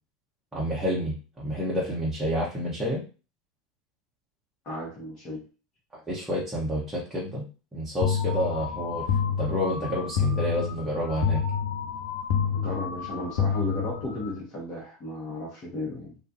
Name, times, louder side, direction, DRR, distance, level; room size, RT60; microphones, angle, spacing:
voice 1, 0.5-3.0 6.1-7.4 7.7-9.0 9.4-11.4, equal, 10° right, -6 dB, 0.9 m, -29 dB
voice 2, 4.6-5.4 12.5-16.2, left 1 dB, 40° left, -4 dB, 1.0 m, -34 dB
sound 1, 8.0-14.4, left 7 dB, 60° left, 0.6 m, -28 dB
2.4 x 2.2 x 2.7 m, 0.34 s
hypercardioid pair, 85°, 2 cm